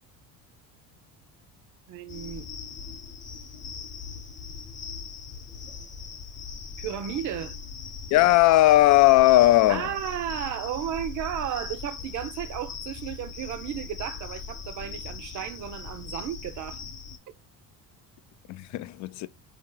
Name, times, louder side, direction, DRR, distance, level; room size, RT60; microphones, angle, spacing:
voice 1, 1.9-2.5 6.8-7.6 9.7-16.8, right 10 dB, 50° right, 0.7 m, -34 dB
sound 1, 2.1-17.2, left 6 dB, 30° left, 0.8 m, -40 dB
voice 2, 8.1-9.9 18.5-19.3, left 16 dB, 50° left, 0.4 m, -18 dB
4.6 x 2.8 x 3.8 m
cardioid pair, 115°, 38 cm